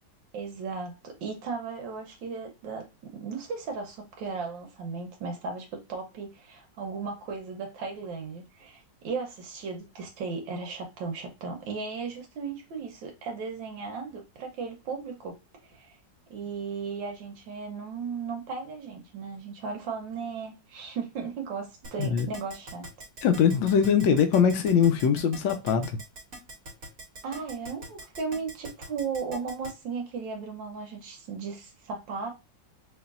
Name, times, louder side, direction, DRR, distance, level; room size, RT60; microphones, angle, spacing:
voice 1, 0.3-15.4 15.6-16.0 16.3-22.9 27.2-32.3, right 5 dB, 80° right, 1.6 m, -36 dB
Keyboard (musical), 21.8-29.7, right 1 dB, 50° right, 1.7 m, -43 dB
voice 2, 23.2-25.9, left 7 dB, 85° left, 1.3 m, -22 dB
4.9 x 2.6 x 2.4 m
omnidirectional pair, 2.0 m